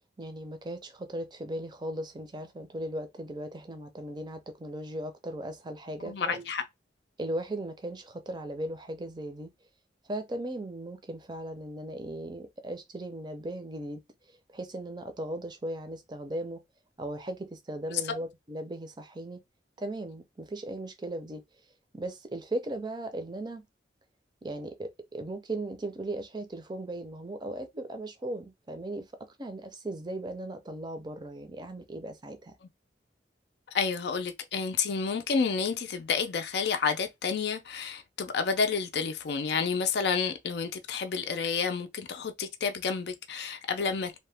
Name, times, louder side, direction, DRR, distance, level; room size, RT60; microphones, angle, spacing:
voice 1, 0.2-6.5 7.2-9.5 10.1-14.0 14.5-16.6 17.0-19.4 19.8-21.4 21.9-23.6 24.4-29.1 29.4-32.5, right 1 dB, 25° right, 0.5 m, -37 dB
voice 2, 6.0-6.6 17.9-18.0 33.7-44.2, left 5 dB, 65° left, 0.4 m, -30 dB
2.8 x 2.1 x 3.3 m
head